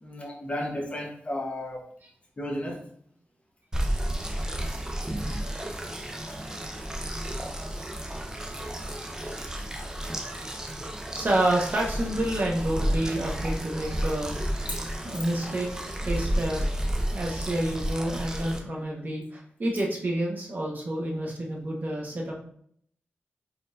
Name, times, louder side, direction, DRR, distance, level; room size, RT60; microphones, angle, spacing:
voice 1, 0.0-1.9 2.4-2.8, left 1 dB, 30° left, 2 dB, 0.9 m, -33 dB
sound 1, 3.7-18.6, right 1 dB, 15° right, 0.6 m, -32 dB
voice 2, 7.1-7.5 7.8-7.9 8.9-9.3 10.2-10.5 11.1-16.7 17.1-22.3, right 1 dB, 45° right, -1 dB, 1.1 m, -29 dB
4.4 x 3.7 x 2.5 m, 0.64 s
wide cardioid pair, 110°, 4 cm